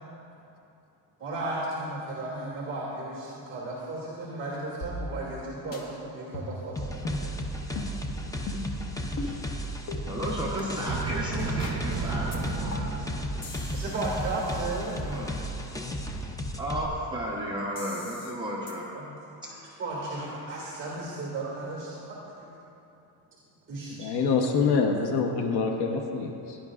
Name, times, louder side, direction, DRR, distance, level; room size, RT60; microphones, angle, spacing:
voice 1, 1.2-7.3 7.7-7.8 13.7-15.0 18.9-22.5 23.7-24.3, right 2 dB, 30° right, -5 dB, 2.1 m, -35 dB
sound 1, 4.8-5.4 5.7-5.8 6.3-6.7 7.0-7.2 7.8-7.9 8.5-8.8 9.2-9.3 9.9-10.0 10.6-10.7 11.1-11.2 11.6-11.8 12.3-12.4 12.7-13.0 13.4-15.3 17.8-18.3 18.7-18.8, left 2 dB, 50° left, 1.4 m, -38 dB
sound 2, 6.8-16.9, equal, 10° left, 0.5 m, -34 dB
voice 2, 10.1-13.2 15.0-15.4 16.6-18.9, equal, 10° right, -6 dB, 0.9 m, -33 dB
sound 3, 10.9-14.3, right 4 dB, 50° right, 0.9 m, -34 dB
voice 3, 24.0-26.6, left 5 dB, 65° left, 3 dB, 1.0 m, -26 dB
17.5 x 10.5 x 2.4 m, 2.8 s
cardioid pair, 160°, 42 cm